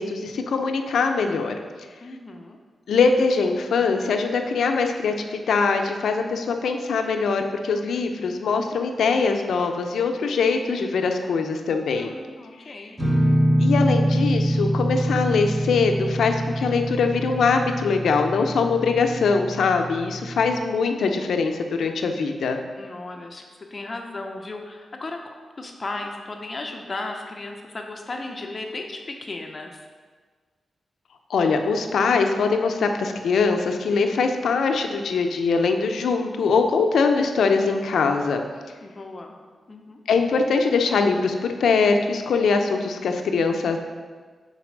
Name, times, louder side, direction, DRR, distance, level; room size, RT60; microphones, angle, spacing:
voice 1, 0.0-1.5 2.9-12.1 13.6-22.6 31.3-38.4 40.1-43.8, left 4 dB, 85° left, 5 dB, 0.5 m, -22 dB
voice 2, 2.0-2.6 12.0-13.0 22.8-23.4 23.7-25.2 25.6-29.8 38.8-39.4 39.7-40.0, left 2 dB, 40° left, 3 dB, 0.6 m, -35 dB
sound 1, 13.0-20.6, right 1 dB, 15° right, 1.5 m, -24 dB
5.1 x 4.1 x 6.0 m, 1.5 s
cardioid pair, 85°, 0 cm